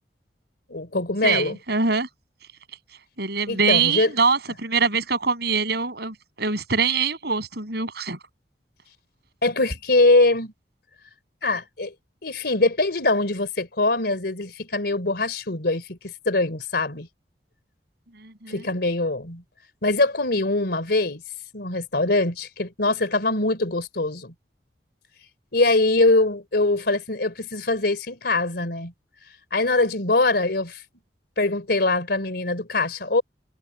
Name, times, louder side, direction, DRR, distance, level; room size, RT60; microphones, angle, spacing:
voice 1, 0.7-1.6 3.5-4.1 9.4-10.5 11.4-11.9 12.2-17.1 18.5-19.4 19.8-21.2 21.5-24.3 25.5-28.9 29.5-30.8 31.4-33.2, left 2 dB, 65° left, 3.5 m, -23 dB
voice 2, 1.2-2.1 3.2-8.2 18.2-18.6, right 5 dB, 65° right, 7.0 m, -24 dB
head